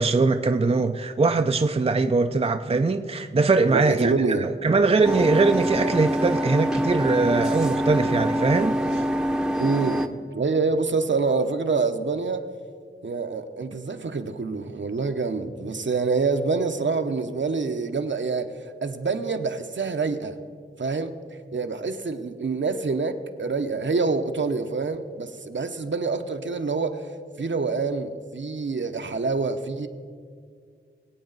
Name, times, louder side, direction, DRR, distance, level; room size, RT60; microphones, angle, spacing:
voice 1, 0.0-4.1 4.4-9.0, right 3 dB, 30° right, 0.5 m, -21 dB
voice 2, 3.7-4.5 9.6-10.0 10.3-12.5 13.0-20.4 20.8-21.1 21.5-27.1 27.4-29.9, right 4 dB, 60° right, 0.9 m, -26 dB
sound 1, 5.0-10.1, equal, 5° right, 0.8 m, -25 dB
22.5 x 8.5 x 4.0 m
wide cardioid pair, 65°, 21 cm